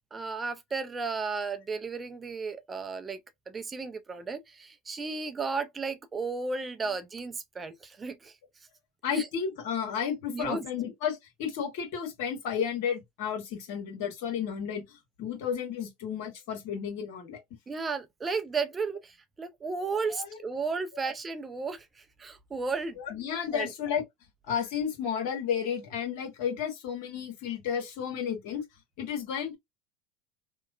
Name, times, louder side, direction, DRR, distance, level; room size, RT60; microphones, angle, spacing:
voice 1, 0.1-3.2 3.5-8.3 9.1-9.3 10.3-10.6 17.7-23.0 23.5-23.7, right 4 dB, 25° right, 0.5 m, -34 dB
voice 2, 9.0-17.4 20.1-20.4 23.0-24.0 24.5-28.6 29.0-29.5, left 7 dB, 70° left, 1.3 m, -32 dB
2.9 x 2.0 x 2.4 m
hypercardioid pair, 85°, 0 cm